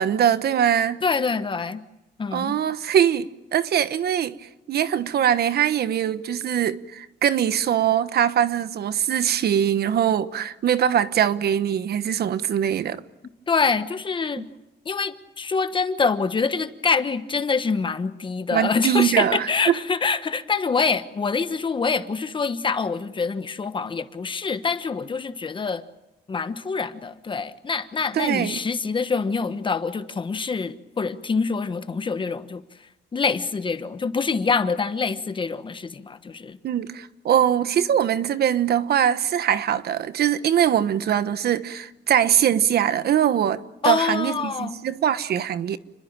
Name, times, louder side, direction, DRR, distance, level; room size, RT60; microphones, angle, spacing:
voice 1, 0.0-1.0 2.3-4.4 4.7-13.0 14.4-14.5 18.5-19.7 28.1-28.6 36.6-45.8, right 9 dB, 65° right, 1.2 m, -22 dB
voice 2, 1.0-1.8 2.2-2.6 13.5-14.5 14.8-25.8 26.3-32.6 33.1-36.6 43.8-44.8, left 5 dB, 30° left, 1.2 m, -25 dB
29.5 x 22.0 x 8.9 m
wide cardioid pair, 160°, 18 cm